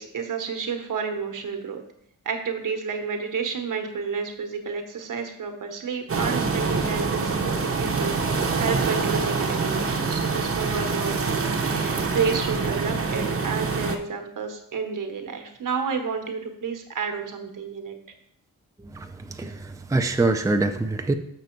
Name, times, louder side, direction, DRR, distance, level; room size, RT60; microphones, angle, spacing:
voice 1, 0.0-1.8 2.2-18.0, right 5 dB, 75° right, 5 dB, 1.2 m, -30 dB
sound 1, 6.1-14.0, right 4 dB, 45° right, 0.8 m, -25 dB
voice 2, 18.9-21.2, right 2 dB, 10° right, 6 dB, 0.5 m, -25 dB
6.7 x 6.1 x 4.5 m, 0.73 s
wide cardioid pair, 105°, 32 cm